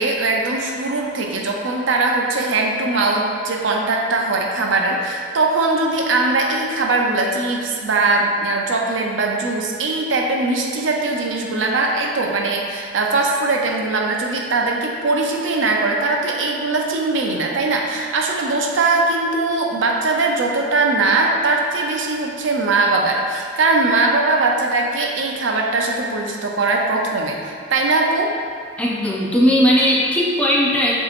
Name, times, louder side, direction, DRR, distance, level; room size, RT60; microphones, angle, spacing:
voice 1, 0.0-28.3, right 3 dB, 80° right, 1 dB, 0.5 m, -20 dB
voice 2, 28.8-30.9, equal, 5° left, -4 dB, 0.5 m, -17 dB
7.5 x 2.8 x 2.5 m, 2.1 s
head